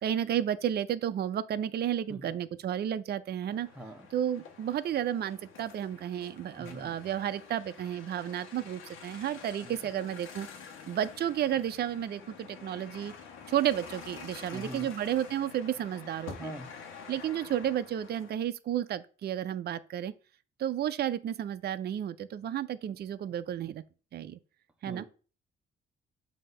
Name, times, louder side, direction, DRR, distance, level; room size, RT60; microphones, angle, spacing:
voice 1, 0.0-3.7 4.1-10.5 10.9-13.1 13.5-16.5 17.1-20.1 20.6-23.8 24.1-24.4 24.8-25.0, right 10 dB, 55° right, 0.5 m, -32 dB
sound 1, 3.4-18.3, left 6 dB, 85° left, 1.2 m, -48 dB
voice 2, 3.7-4.1 6.6-7.0 9.6-9.7 14.5-14.9 16.3-16.7 24.9-25.1, right 1 dB, 5° right, 0.9 m, -43 dB
7.5 x 2.8 x 5.4 m
cardioid pair, 90°, 20 cm